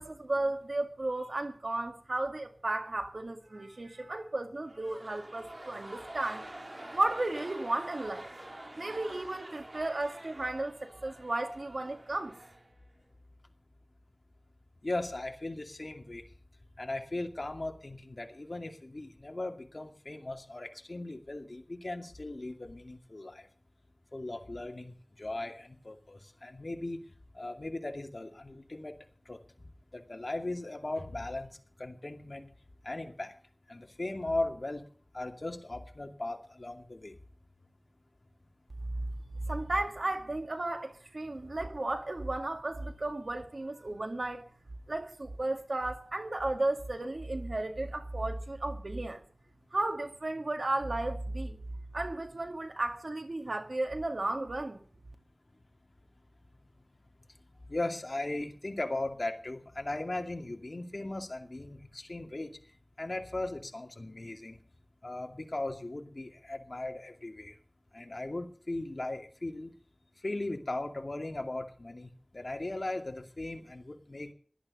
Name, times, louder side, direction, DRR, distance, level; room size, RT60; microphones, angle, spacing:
voice 1, 0.0-6.5 6.9-8.3 8.8-12.4 38.8-39.0 39.4-44.4 44.9-49.2 49.7-51.6 51.9-54.8, right 2 dB, 85° right, 2.0 m, -34 dB
sound 1, 4.6-13.1, right 1 dB, 50° right, 2.7 m, -47 dB
voice 2, 14.8-16.2 16.8-23.5 24.1-27.1 27.3-29.0 29.3-29.4 29.9-31.5 31.8-32.5 32.8-33.3 33.7-34.8 35.1-37.2 57.7-62.5 63.0-64.6 65.0-67.5 67.9-69.7 70.2-74.3, left 2 dB, 65° left, 2.4 m, -38 dB
16.5 x 12.0 x 5.4 m
wide cardioid pair, 45°, 0 cm